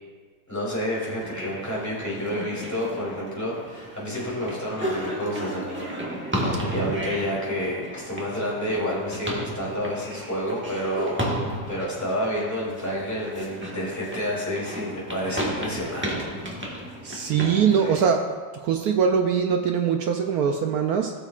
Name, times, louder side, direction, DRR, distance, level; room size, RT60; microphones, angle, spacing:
voice 1, 0.5-5.9 6.2-16.3 17.8-18.0, equal, 10° left, -6 dB, 2.8 m, -30 dB
sound 1, 1.0-17.9, equal, 5° right, 1.1 m, -33 dB
voice 2, 17.0-18.2 18.5-21.1, right 7 dB, 75° right, 4 dB, 0.8 m, -22 dB
17.0 x 6.4 x 2.4 m, 1.5 s
omnidirectional pair, 2.1 m